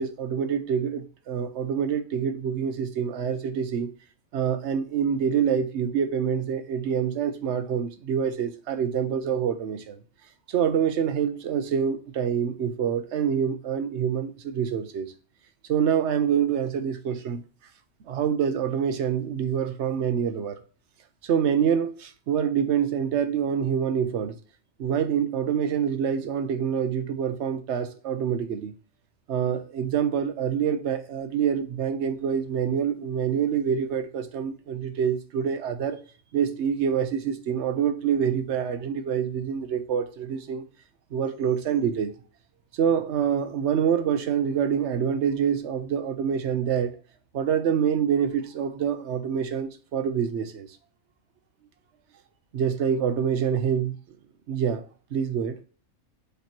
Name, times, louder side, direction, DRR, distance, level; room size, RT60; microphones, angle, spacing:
voice 1, 0.0-3.9 4.3-10.0 10.5-15.1 15.7-17.4 18.1-20.6 21.2-24.4 24.8-28.7 29.3-36.0 36.3-40.6 41.1-42.1 42.7-47.0 47.3-50.7 52.5-53.9 54.5-54.8 55.1-55.6, right 8 dB, 65° right, 1.0 m, -26 dB
8.3 x 3.0 x 4.4 m
omnidirectional pair, 1.4 m